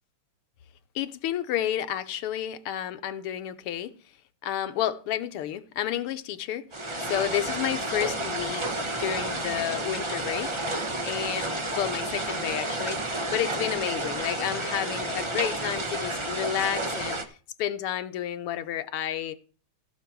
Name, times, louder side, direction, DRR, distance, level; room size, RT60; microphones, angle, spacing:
voice 1, 1.0-3.9 4.4-6.7 7.0-10.6 11.0-17.2 17.6-19.3, left 11 dB, 80° left, 1.8 m, -31 dB
sound 1, 6.7-17.2, right 1 dB, 30° right, 0.5 m, -31 dB
16.0 x 6.7 x 4.6 m
omnidirectional pair, 2.4 m